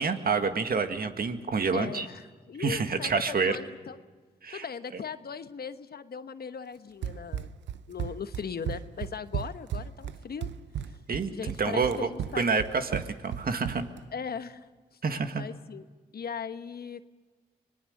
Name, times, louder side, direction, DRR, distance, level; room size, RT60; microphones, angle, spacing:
voice 1, 0.0-2.1 2.6-3.6 4.4-4.6 11.1-11.3 11.6-12.1 12.4-13.8 15.0-15.4, right 5 dB, 55° right, 7 dB, 1.8 m, -28 dB
voice 2, 1.7-3.1 3.4-4.0 4.5-7.6 7.9-10.5 11.3-12.4 14.1-14.7 15.4-15.8 16.1-17.0, left 6 dB, 60° left, 11 dB, 1.2 m, -38 dB
Run, 7.0-14.0, right 9 dB, 80° right, 0.7 m, -35 dB
25.0 x 19.5 x 6.6 m, 1.3 s
supercardioid pair, 45°, 18 cm